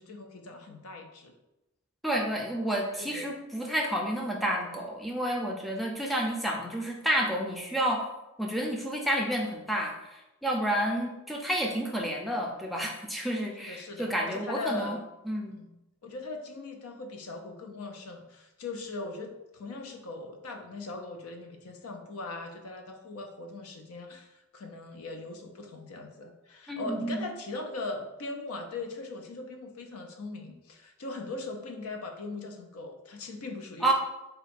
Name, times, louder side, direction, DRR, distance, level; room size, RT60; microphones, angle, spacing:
voice 1, 0.0-1.3 3.0-3.3 13.7-15.0 15.5-15.8 16.0-33.9, left 3 dB, 85° left, 4 dB, 0.6 m, -40 dB
voice 2, 2.0-8.1 8.4-15.0 15.2-15.6 26.7-27.3 33.8-33.9, right 1 dB, ahead, -1 dB, 0.4 m, -30 dB
3.9 x 2.2 x 4.2 m, 0.95 s
head